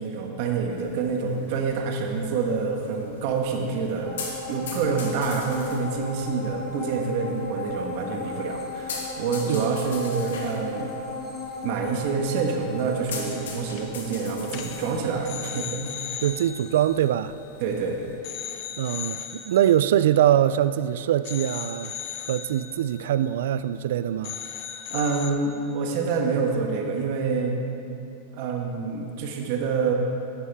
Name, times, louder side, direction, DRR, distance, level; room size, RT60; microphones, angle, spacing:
voice 1, 0.0-4.1 4.5-10.9 11.6-15.8 16.1-16.2 17.6-18.0 24.9-27.6 28.3-29.9, right 5 dB, 55° right, 1.3 m, -27 dB
sound 1, 0.7-18.1, left 4 dB, 85° left, 1.7 m, -43 dB
sound 2, 4.0-17.7 18.1-18.2, left 3 dB, 20° left, 1.7 m, -37 dB
sound 3, 13.1-13.5 13.8-14.0 14.4-17.8 18.2-20.8 21.2-23.9 24.2-25.3, left 10 dB, 50° left, 0.8 m, -38 dB
voice 2, 16.2-17.3 18.8-22.0 22.3-24.4, right 11 dB, 75° right, 0.3 m, -23 dB
11.0 x 8.6 x 3.5 m
supercardioid pair, 130°, 0 cm